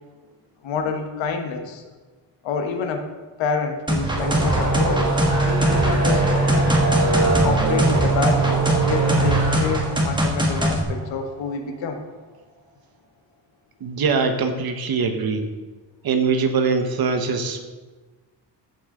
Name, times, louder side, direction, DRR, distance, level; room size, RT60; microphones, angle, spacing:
voice 1, 0.6-1.8 2.4-3.1 3.4-6.7 7.4-12.0, left 5 dB, 85° left, 5 dB, 1.3 m, -28 dB
sound 1, 3.9-10.8, equal, 10° right, 1.6 m, -23 dB
sound 2, 3.9-11.3, right 3 dB, 35° right, 2.9 m, -22 dB
voice 2, 13.8-15.4 16.0-17.7, right 5 dB, 55° right, 6 dB, 1.3 m, -22 dB
14.0 x 6.4 x 3.8 m, 1.3 s
cardioid pair, 110°, 44 cm